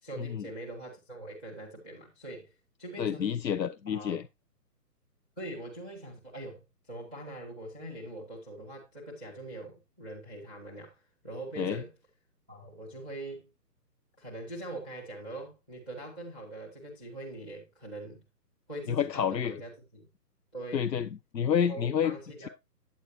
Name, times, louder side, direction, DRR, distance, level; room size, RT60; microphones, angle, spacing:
voice 1, 0.0-2.5 2.8-3.3 3.9-4.2 5.4-11.9 12.5-13.5 14.2-18.2 18.7-20.1 20.5-20.9 21.5-22.5, right 1 dB, 5° left, 0.7 m, -43 dB
voice 2, 3.0-4.2 11.6-11.8 18.9-19.6 20.7-22.2, left 8 dB, 90° left, 0.6 m, -29 dB
9.2 x 8.3 x 2.7 m
figure-of-eight pair, 135°, 49 cm